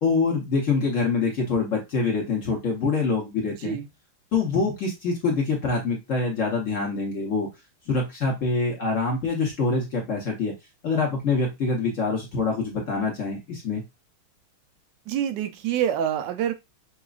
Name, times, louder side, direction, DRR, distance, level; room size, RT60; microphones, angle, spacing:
voice 1, 0.0-3.8 4.3-7.5 7.9-10.5 10.8-13.8, left 4 dB, 55° left, 0.9 m, -25 dB
voice 2, 15.1-16.5, right 9 dB, 75° right, 1.0 m, -26 dB
5.9 x 2.4 x 2.4 m
omnidirectional pair, 2.3 m